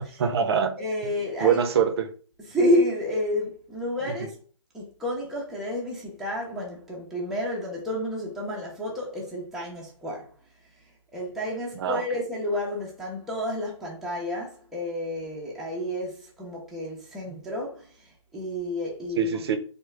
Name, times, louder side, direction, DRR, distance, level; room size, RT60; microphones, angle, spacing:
voice 1, 0.0-0.8 1.4-2.1 11.7-12.0 19.2-19.6, right 7 dB, 50° right, 0.6 m, -24 dB
voice 2, 0.8-1.6 2.5-4.4 4.7-10.3 11.1-19.4, left 1 dB, ahead, 0.6 m, -30 dB
3.5 x 2.2 x 3.2 m
hypercardioid pair, 150°, 17 cm